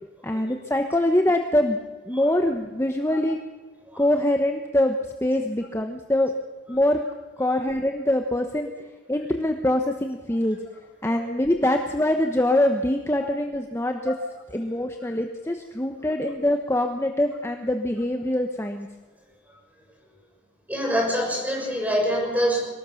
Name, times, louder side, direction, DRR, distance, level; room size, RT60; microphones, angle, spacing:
voice 1, 0.2-1.8 2.1-3.4 4.0-6.3 6.7-7.0 7.4-8.7 9.1-10.6 11.0-14.1 14.5-18.9, left 1 dB, 15° left, 4 dB, 1.1 m, -24 dB
voice 2, 20.7-22.7, equal, 10° right, 0 dB, 6.4 m, -25 dB
23.5 x 18.0 x 7.1 m, 1.2 s
head